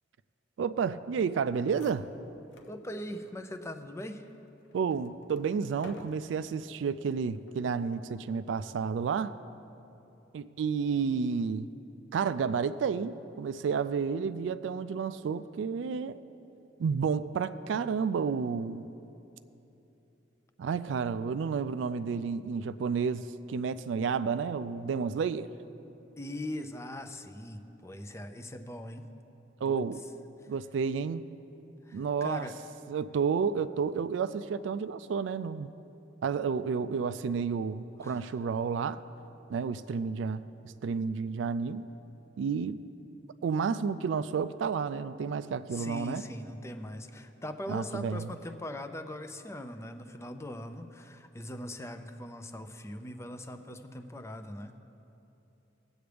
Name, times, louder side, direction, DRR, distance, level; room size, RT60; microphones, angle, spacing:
voice 1, 0.6-2.1 4.7-9.3 10.3-11.7 12.1-16.2 16.8-18.9 20.6-25.5 29.6-30.0 30.5-31.3 31.9-32.5 32.9-35.7 36.2-39.0 39.5-41.8 42.4-42.8 43.4-46.2 47.7-48.3, right 6 dB, 80° right, 13 dB, 0.3 m, -31 dB
sound 1, 1.3-1.4 1.6-2.8 3.2-3.3 4.0-6.6 7.3-7.7, left 2 dB, 80° left, 0.7 m, -51 dB
voice 2, 2.7-4.3 26.2-29.1 29.7-29.8 30.4-30.5 31.8-32.5 38.0-38.3 45.7-54.7, left 1 dB, 15° left, 7 dB, 0.5 m, -41 dB
18.5 x 7.9 x 3.4 m, 2.9 s
head